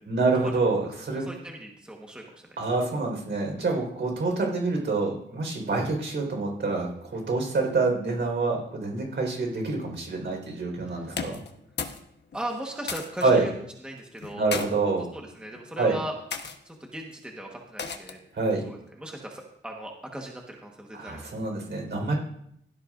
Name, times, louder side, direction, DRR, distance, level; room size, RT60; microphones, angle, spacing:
voice 1, 0.1-1.3 2.6-11.4 13.2-13.4 14.3-15.1 15.8-16.0 18.3-18.6 20.9-22.1, right 3 dB, 60° right, 1 dB, 4.3 m, -26 dB
voice 2, 1.1-2.2 11.0-11.1 12.3-13.5 13.8-14.5 15.1-16.1 16.6-18.2 18.6-21.2, right 1 dB, 5° right, 0 dB, 1.3 m, -38 dB
sound 1, 11.1-12.0 12.3-13.3 14.2-14.7 15.4-15.7 16.3-16.6 17.8-18.3, left 5 dB, 60° left, 1.1 m, -34 dB
17.0 x 13.5 x 2.5 m, 0.73 s
wide cardioid pair, 170°, 20 cm